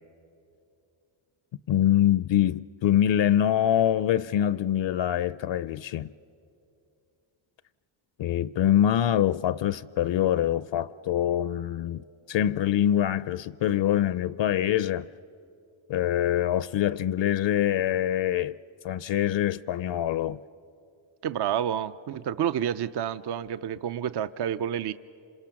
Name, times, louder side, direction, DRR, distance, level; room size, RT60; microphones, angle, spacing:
voice 1, 1.7-6.1 8.2-15.1 15.9-18.6 18.8-20.4, left 11 dB, 65° left, 0.5 m, -24 dB
voice 2, 21.2-24.9, right 9 dB, 55° right, 0.6 m, -29 dB
27.5 x 26.5 x 5.9 m
cardioid pair, 100°, 49 cm